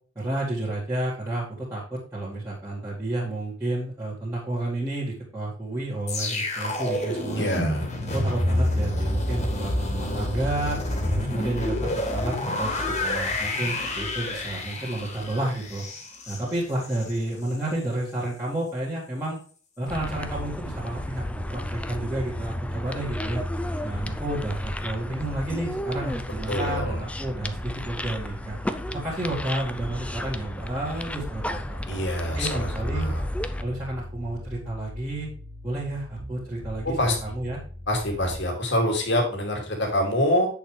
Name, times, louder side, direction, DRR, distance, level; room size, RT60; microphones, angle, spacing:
voice 1, 0.2-7.6 8.0-10.8 11.2-12.7 13.0-15.8 16.3-19.4 19.8-23.4 23.8-28.6 28.9-32.1 32.4-33.1 33.6-35.3 35.6-37.6, right 1 dB, 15° right, -9 dB, 2.3 m, -31 dB
sound 1, 6.1-17.2 17.5-17.7, left 1 dB, 35° left, 2.3 m, -28 dB
voice 2, 7.4-7.9 26.5-27.0 31.9-33.2 36.8-37.2 37.9-40.5, left 1 dB, 60° left, 1 dB, 2.6 m, -25 dB
sound 2, 19.9-33.6, left 1 dB, 5° left, 0.5 m, -33 dB
sound 3, 19.9-38.4, equal, 85° right, 2.0 m, -40 dB
8.1 x 6.9 x 3.3 m, 0.42 s
head